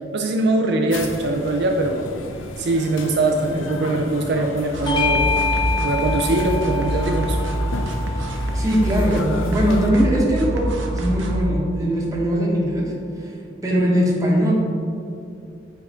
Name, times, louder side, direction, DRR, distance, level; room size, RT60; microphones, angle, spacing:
voice 1, 0.1-2.0 2.6-5.3 5.8-7.4, right 2 dB, 60° right, 2 dB, 0.5 m, -22 dB
sound 1, 0.9-9.9, left 2 dB, 85° left, 0.6 m, -34 dB
sound 2, 4.7-11.4, right 1 dB, 80° right, 0.8 m, -25 dB
Bell / Doorbell, 4.9-9.7, left 4 dB, 25° left, 0.4 m, -27 dB
voice 2, 8.5-12.8 13.2-13.3 13.6-14.5, equal, 20° right, -4 dB, 1.3 m, -20 dB
7.9 x 4.7 x 3.6 m, 2.6 s
head